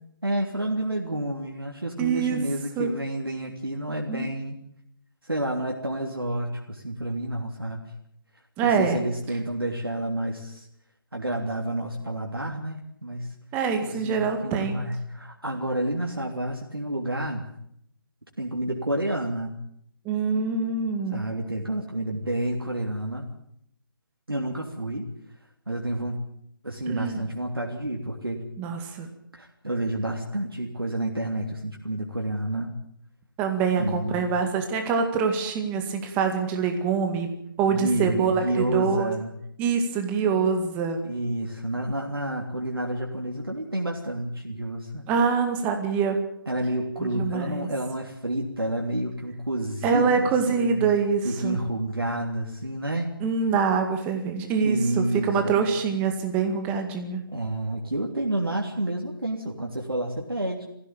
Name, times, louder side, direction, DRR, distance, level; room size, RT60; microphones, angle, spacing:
voice 1, 0.2-4.6 5.2-7.8 8.6-10.7 11.1-13.3 13.8-17.4 18.4-19.6 21.1-23.2 24.3-25.1 25.7-26.2 26.6-28.4 29.3-32.8 33.7-34.3 37.7-39.3 41.0-45.0 46.5-50.8 51.2-53.2 54.6-55.6 57.3-60.7, right 1 dB, 85° right, 0 dB, 3.2 m, -29 dB
voice 2, 2.0-2.4 2.8-2.9 4.1-4.3 8.6-9.0 13.5-14.8 20.1-21.2 26.9-27.2 28.6-29.1 33.4-37.3 37.6-39.1 39.6-41.0 45.1-46.3 47.0-47.7 49.8-51.6 53.2-57.3, right 5 dB, 15° right, 5 dB, 2.0 m, -25 dB
19.5 x 15.5 x 9.0 m, 0.73 s
figure-of-eight pair, 150°, 12 cm